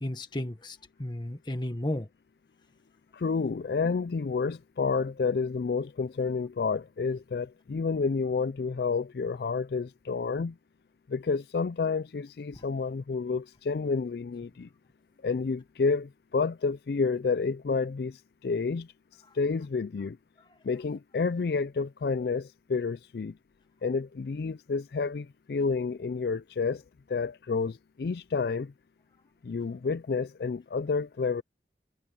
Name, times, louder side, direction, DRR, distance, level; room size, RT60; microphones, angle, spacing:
voice 1, 0.0-2.1 3.8-3.9 12.6-12.7, left 1 dB, 25° left, 1.5 m, -34 dB
voice 2, 3.1-10.6 11.1-14.7 15.2-18.9 19.3-20.2 20.6-23.4 23.8-26.8 27.1-28.7 29.4-31.4, left 4 dB, 65° left, 0.4 m, -30 dB
head